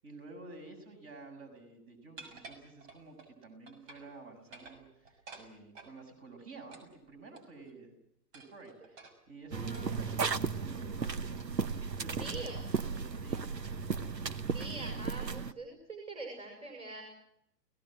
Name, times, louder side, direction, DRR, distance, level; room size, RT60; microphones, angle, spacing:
voice 1, 0.0-7.9 8.3-11.2 12.0-13.5, right 3 dB, 30° right, 6 dB, 7.3 m, -51 dB
sound 1, 2.2-3.3 3.7-4.1 4.4-6.0 6.7-7.7 8.3-10.5 11.4-11.7 12.1-12.2 12.7-13.0 13.3-13.5 14.0-14.4, right 3 dB, 50° right, 6.7 m, -53 dB
voice 2, 9.5-10.1 12.2-12.8 14.5-17.0, right 2 dB, 10° right, 3 dB, 5.5 m, -44 dB
sound 2, 9.5-15.5, right 5 dB, 90° right, 1.2 m, -35 dB
30.0 x 18.0 x 7.7 m, 0.80 s
figure-of-eight pair, 110°, 48 cm